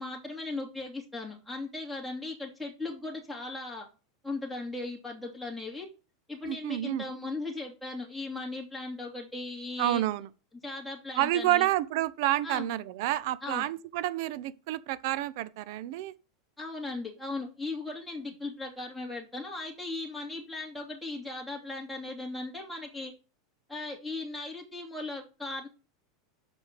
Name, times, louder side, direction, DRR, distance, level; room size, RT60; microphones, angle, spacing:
voice 1, 0.0-3.9 4.2-5.9 6.3-10.1 10.6-11.7 12.4-12.7 13.4-13.7 16.6-23.1 23.7-25.7, left 2 dB, ahead, 2.5 m, -37 dB
voice 2, 6.5-7.0 9.8-10.3 11.2-16.1, right 14 dB, 65° right, 0.6 m, -29 dB
6.1 x 4.8 x 6.7 m
hypercardioid pair, 105°, 2 cm